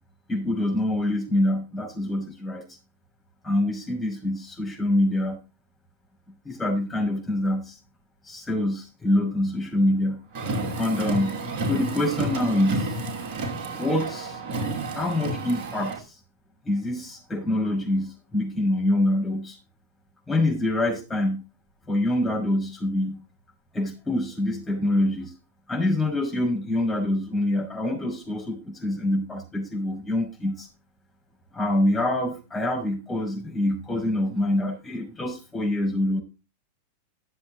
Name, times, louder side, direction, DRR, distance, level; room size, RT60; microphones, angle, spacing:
voice 1, 0.3-2.7 3.4-5.4 6.4-7.8 8.2-10.2 10.8-13.1 13.7-14.4 14.9-16.2 16.7-19.6 20.3-21.4 21.9-23.2 23.7-25.3 25.7-30.7 31.5-36.2, left 1 dB, 15° left, 1 dB, 5.6 m, -25 dB
Car, 10.3-16.0, right 2 dB, 45° right, 2.6 m, -30 dB
13.0 x 7.6 x 3.9 m, 0.29 s
figure-of-eight pair, 90°, 0 cm